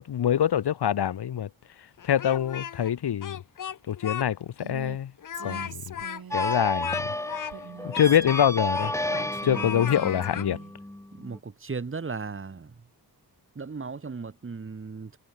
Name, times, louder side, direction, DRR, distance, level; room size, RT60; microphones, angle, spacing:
voice 1, 0.1-1.5 2.0-3.4 3.9-5.1 5.4-5.9 6.3-7.0 7.8-8.9 9.4-10.6, left 9 dB, 75° left, 1.6 m, -25 dB
Speech, 2.0-2.9 3.2-4.3 4.6-4.7 5.2-9.3 9.5-10.5, left 9 dB, 50° left, 0.9 m, -36 dB
Female speech woman speaking, 4.6-5.0 5.3-6.6 7.5-8.6 9.1-10.7, right 8 dB, 65° right, 2.2 m, -43 dB
sound 1, 6.3-11.4, left 1 dB, 5° left, 2.0 m, -32 dB
voice 2, 11.2-12.7 13.6-15.2, right 4 dB, 30° right, 2.0 m, -36 dB
cardioid pair, 90°, 40 cm